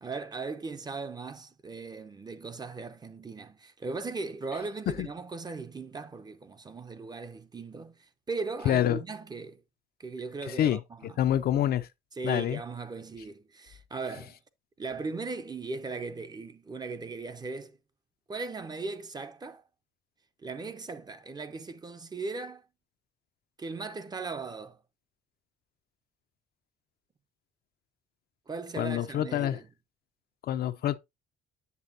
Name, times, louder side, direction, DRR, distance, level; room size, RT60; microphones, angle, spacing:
voice 1, 0.0-7.9 8.3-9.6 10.0-10.8 12.2-14.4 14.8-17.7 18.3-19.6 20.4-22.6 23.6-24.8 28.5-29.7, right 4 dB, 20° right, 0.7 m, -38 dB
voice 2, 8.6-9.0 10.5-10.8 11.2-11.9 12.2-12.6 28.8-29.6 30.5-31.0, left 11 dB, 55° left, 0.6 m, -26 dB
8.3 x 6.7 x 2.8 m
cardioid pair, 115°, 19 cm